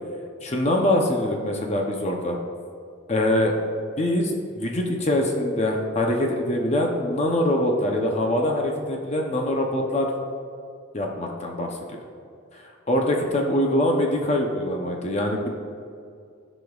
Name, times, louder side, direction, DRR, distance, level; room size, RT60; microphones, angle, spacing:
voice 1, 0.4-2.4 3.1-3.5 4.0-10.1 10.9-11.8 12.9-15.5, left 1 dB, 35° left, 1 dB, 0.7 m, -23 dB
14.5 x 5.1 x 2.4 m, 2.3 s
head